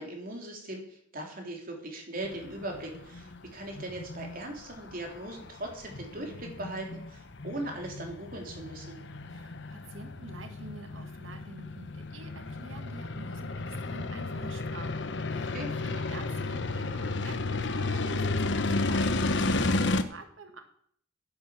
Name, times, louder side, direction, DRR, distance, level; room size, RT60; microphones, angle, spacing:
voice 1, 0.0-9.0 15.3-15.7, right 1 dB, 50° right, 2 dB, 3.3 m, -39 dB
sound 1, 2.2-20.0, left 2 dB, 65° left, 1.0 m, -33 dB
voice 2, 9.3-20.6, right 2 dB, 90° right, 6 dB, 1.8 m, -48 dB
11.0 x 9.1 x 7.2 m, 0.65 s
head